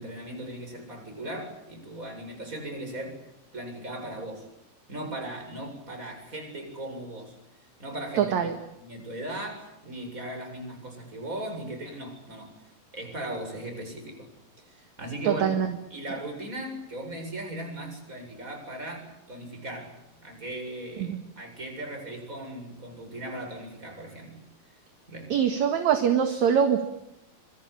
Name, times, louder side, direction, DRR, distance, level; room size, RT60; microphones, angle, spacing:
voice 1, 0.0-3.2 3.5-4.5 4.9-7.4 7.8-8.5 8.8-12.6 12.9-14.3 14.7-15.4 15.9-24.4 25.1-25.3, right 1 dB, 20° right, 3 dB, 7.9 m, -38 dB
voice 2, 8.2-8.6 15.2-15.8 21.0-21.2 25.3-26.9, right 8 dB, 55° right, 6 dB, 2.6 m, -23 dB
26.5 x 24.0 x 8.6 m, 0.84 s
omnidirectional pair, 4.8 m